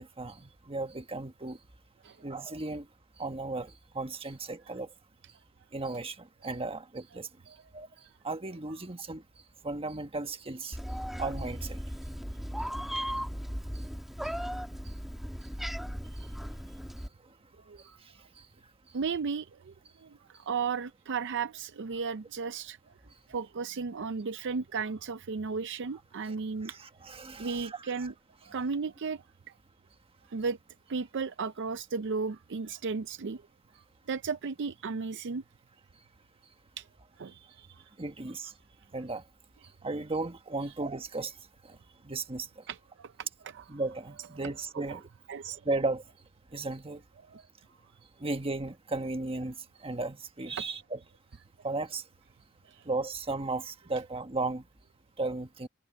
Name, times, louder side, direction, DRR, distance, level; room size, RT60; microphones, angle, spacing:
voice 1, 0.0-1.6 2.2-2.9 3.2-4.9 5.7-7.3 7.7-7.9 8.2-9.2 9.6-10.8 11.2-11.8 26.2-26.3 26.6-28.1 38.0-38.5 38.9-39.2 39.8-41.3 42.0-42.5 43.7-45.1 45.6-46.0 46.5-47.0 48.2-49.5 49.8-51.0 51.6-52.0 52.8-54.6 55.2-55.7, right 3 dB, 25° right, 1.5 m, -35 dB
Meow, 10.7-17.1, equal, ahead, 1.5 m, -37 dB
voice 2, 18.9-19.7 20.0-22.8 23.3-26.8 27.4-28.1 28.5-29.2 30.3-30.6 30.9-33.4 34.1-35.4 36.8-36.9 37.2-37.8 42.7-43.1 43.4-43.6 44.7-45.0 45.3-45.6 47.3-47.4 52.7-52.8, right 5 dB, 55° right, 0.5 m, -34 dB
head